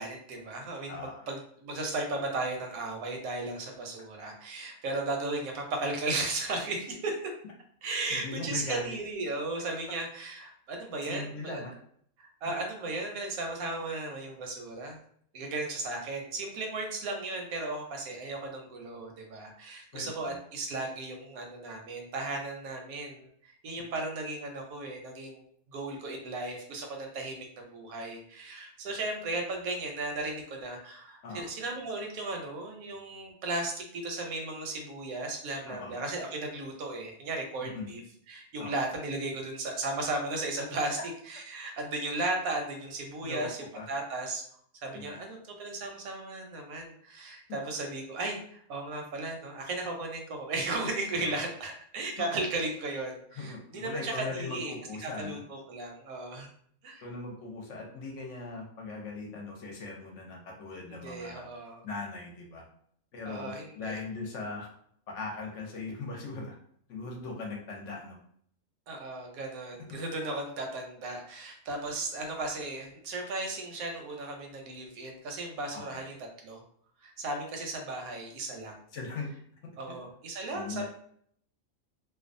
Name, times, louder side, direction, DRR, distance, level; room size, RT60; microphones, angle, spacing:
voice 1, 0.0-7.2 7.8-11.6 12.2-15.0 15.3-25.4 25.7-38.0 38.3-41.0 41.3-43.6 43.9-44.4 44.8-56.5 56.8-57.1 60.9-61.8 63.3-64.0 68.9-76.2 76.4-76.6 77.0-78.8 79.8-80.9, right 2 dB, 85° right, 2 dB, 1.1 m, -35 dB
voice 2, 0.9-1.3 8.1-8.9 11.0-11.7 19.9-20.4 31.2-31.5 35.7-35.9 37.6-37.9 38.6-38.7 43.2-43.5 43.7-43.9 44.9-45.2 51.1-51.4 53.4-55.4 57.0-61.5 61.8-62.7 63.1-64.7 65.1-66.6 66.9-68.2 69.9-70.0 75.7-76.0 78.9-79.3 80.5-80.9, left 3 dB, 65° left, 0 dB, 0.9 m, -39 dB
2.6 x 2.2 x 2.5 m, 0.63 s
omnidirectional pair, 1.5 m